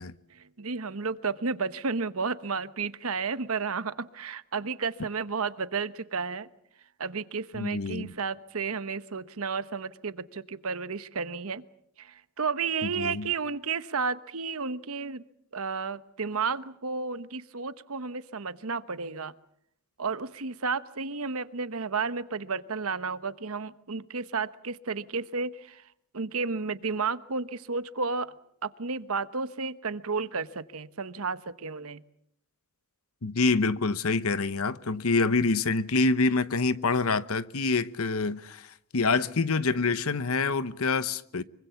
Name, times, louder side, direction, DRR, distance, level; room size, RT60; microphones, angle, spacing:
voice 1, 0.3-6.5 7.0-11.6 12.0-15.2 15.5-19.3 20.0-25.9 26.1-28.3 28.6-32.0, right 4 dB, 70° right, 1.1 m, -32 dB
voice 2, 7.5-8.1 13.0-13.3 33.2-38.7 38.9-41.4, left 3 dB, 70° left, 0.9 m, -26 dB
25.0 x 23.5 x 7.0 m
head